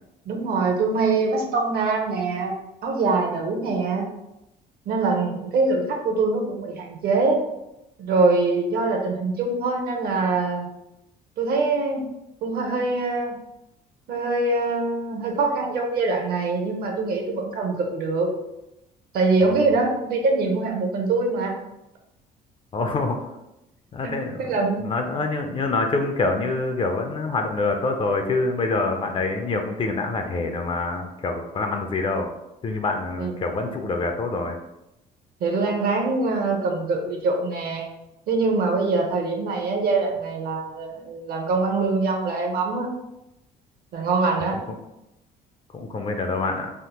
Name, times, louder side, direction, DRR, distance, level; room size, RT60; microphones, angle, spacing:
voice 1, 0.3-2.5 2.8-4.1 4.9-7.4 8.0-10.7 11.4-12.0 12.4-13.4 14.1-18.3 19.1-21.6 24.0-24.9 33.2-33.4 35.4-37.9 38.3-42.9 43.9-44.6, right 3 dB, 65° right, 2 dB, 0.7 m, -23 dB
voice 2, 19.4-19.7 22.7-23.2 23.9-24.5 24.8-32.3 32.6-34.6 44.5-44.6 45.7-46.7, left 3 dB, 30° left, 5 dB, 0.4 m, -26 dB
3.4 x 2.0 x 2.9 m, 0.90 s
cardioid pair, 110°, 17 cm